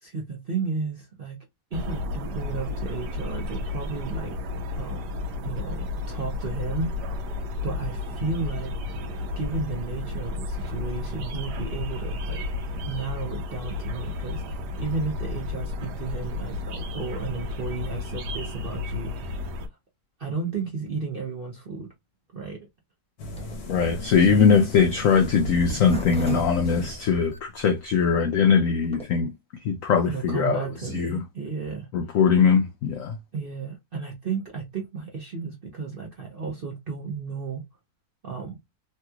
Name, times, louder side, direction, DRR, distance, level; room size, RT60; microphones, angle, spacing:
voice 1, 0.0-1.4 1.7-4.3 4.8-5.1 5.4-7.2 7.6-8.7 9.4-12.5 12.9-19.6 20.2-21.9 22.3-22.6 24.2-24.9 30.0-32.2 33.3-37.6 38.2-38.6, right 5 dB, 50° right, 0.6 m, -33 dB
sound 1, 1.7-19.7, left 3 dB, 70° right, 1.2 m, -32 dB
sound 2, 23.2-27.4, left 2 dB, 65° left, 1.1 m, -37 dB
Zipper (clothing), 23.3-27.6 28.1-28.2 28.4-28.5 28.7-29.0, equal, 5° left, 0.5 m, -36 dB
voice 2, 23.7-29.3 29.6-30.6 30.9-31.2 31.9-33.2, left 6 dB, 85° left, 0.7 m, -21 dB
3.2 x 2.9 x 2.3 m
omnidirectional pair, 2.0 m